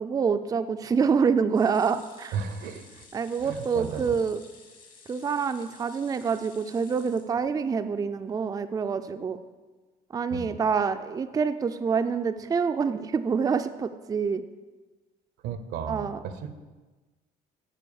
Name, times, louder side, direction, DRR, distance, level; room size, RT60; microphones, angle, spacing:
voice 1, 0.0-2.4 3.1-4.4 5.1-9.4 10.1-14.4 15.9-16.2, right 6 dB, 20° right, 9 dB, 0.4 m, -26 dB
sound 1, 1.5-7.8 8.3-8.4 8.7-8.8, left 4 dB, 55° left, 1.7 m, -53 dB
voice 2, 2.3-3.0 3.4-4.2 10.3-10.5 15.4-16.5, right 6 dB, 85° right, 9 dB, 0.8 m, -34 dB
8.2 x 4.7 x 7.0 m, 1.3 s
cardioid pair, 110°, 17 cm